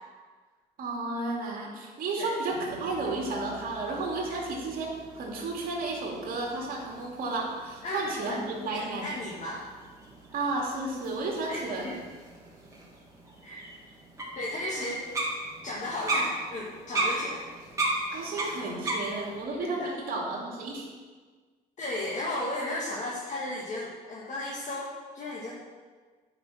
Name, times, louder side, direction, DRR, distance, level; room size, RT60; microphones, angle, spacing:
voice 1, 0.8-9.1 10.3-11.9 14.8-14.9 18.1-20.9, right 2 dB, 60° right, -2 dB, 2.5 m, -32 dB
sound 1, 2.5-19.5, right 2 dB, 20° right, 2.6 m, -37 dB
voice 2, 7.8-8.4 8.7-9.6 11.5-11.9 13.4-13.6 14.4-15.0 15.6-17.4 19.6-20.0 21.8-24.9 25.1-25.5, left 1 dB, 45° left, -5 dB, 1.8 m, -34 dB
9.6 x 5.6 x 6.2 m, 1.5 s
cardioid pair, 110°, 17 cm